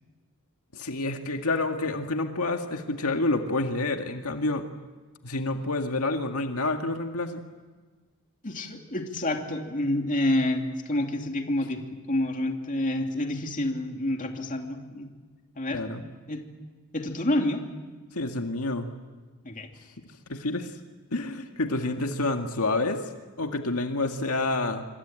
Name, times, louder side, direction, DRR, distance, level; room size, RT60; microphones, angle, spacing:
voice 1, 0.7-4.7 5.2-7.4 15.7-16.0 18.1-18.9 20.3-20.7 21.1-23.0 23.4-24.8, left 2 dB, 85° left, 4 dB, 1.9 m, -28 dB
voice 2, 8.4-15.1 15.6-15.8 16.3-16.4 16.9-17.6 19.4-19.7, left 1 dB, 35° left, 3 dB, 2.8 m, -28 dB
26.5 x 24.5 x 9.0 m, 1.3 s
head